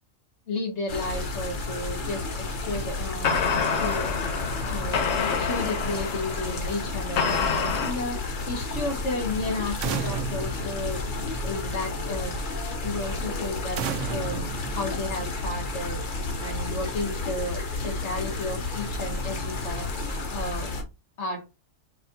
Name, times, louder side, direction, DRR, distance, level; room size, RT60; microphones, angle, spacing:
voice 1, 0.5-3.4 3.8-4.1 4.6-5.0 5.4-8.2 8.5-11.0 11.4-12.3 12.8-13.8 14.1-14.4 14.7-16.0 16.4-19.9 20.3-20.7 21.2-21.5, left 2 dB, 65° left, 1 dB, 1.7 m, -32 dB
sound 1, 0.9-20.8, left 2 dB, 45° left, 1.1 m, -32 dB
sound 2, 2.7-2.9 3.2-7.9, left 5 dB, 85° left, 1.2 m, -27 dB
sound 3, 9.8-11.6 13.8-15.5, right 7 dB, 75° right, 1.0 m, -33 dB
4.9 x 4.0 x 2.7 m, 0.27 s
omnidirectional pair, 1.3 m